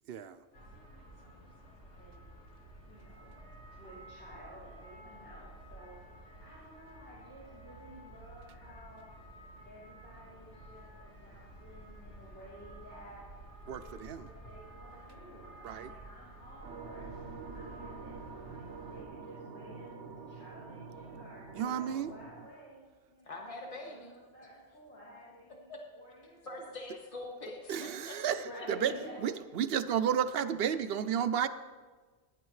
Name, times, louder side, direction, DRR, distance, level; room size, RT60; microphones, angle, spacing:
voice 1, 0.1-0.4 13.7-14.3 15.6-15.9 21.5-22.1 27.7-28.9 29.2-31.5, right 8 dB, 65° right, 12 dB, 0.7 m, -32 dB
sound 1, 0.5-19.0, right 1 dB, 85° left, 2.1 m, -52 dB
voice 2, 2.0-2.3 2.9-3.3 3.8-6.1 6.4-9.0 9.6-13.2 13.8-13.9 14.2-18.1 18.4-22.8 23.1-25.7 25.9-26.6 28.3-29.6, equal, 70° left, -9 dB, 3.7 m, -52 dB
sound 2, 16.6-22.5, right 4 dB, 85° right, 1.2 m, -46 dB
voice 3, 23.3-24.1 25.7-25.8 26.4-28.7, left 2 dB, 30° left, 0 dB, 1.6 m, -44 dB
17.0 x 9.8 x 3.2 m, 1.4 s
omnidirectional pair, 1.2 m